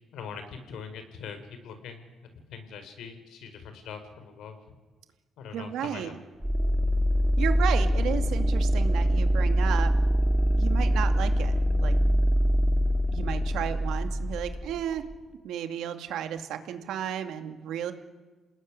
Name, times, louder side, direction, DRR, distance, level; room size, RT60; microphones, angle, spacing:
voice 1, 0.1-1.4 1.6-2.1 2.5-4.6 5.4-6.1, left 6 dB, 80° left, 8 dB, 4.6 m, -42 dB
voice 2, 5.5-6.2 7.4-10.0 10.6-12.2 13.1-15.1 15.4-17.9, right 9 dB, 85° right, 7 dB, 2.4 m, -33 dB
sound 1, 6.4-15.1, equal, 5° right, 2.0 m, -24 dB
28.0 x 19.0 x 9.9 m, 1.3 s
cardioid pair, 90°, 0 cm